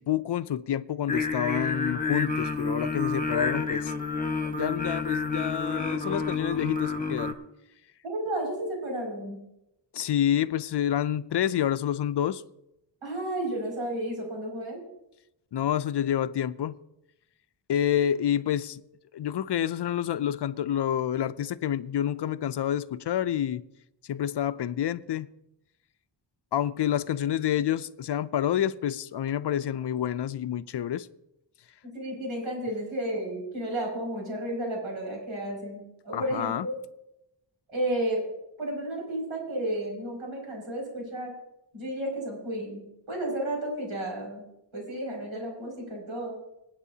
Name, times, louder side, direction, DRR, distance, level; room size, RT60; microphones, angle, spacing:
voice 1, 0.0-3.9 4.4-7.4 9.9-12.4 15.5-16.7 17.7-18.8 19.1-23.6 24.1-25.3 26.5-31.1 36.1-36.7, left 10 dB, 60° left, 0.5 m, -28 dB
Singing, 1.1-7.3, left 4 dB, 15° left, 1.1 m, -29 dB
voice 2, 8.0-9.4 13.0-14.8 31.8-36.8 37.7-38.3 38.6-41.3 41.7-44.4 44.7-46.4, right 1 dB, 85° right, 6.0 m, -32 dB
26.5 x 8.9 x 2.8 m
wide cardioid pair, 170°, 47 cm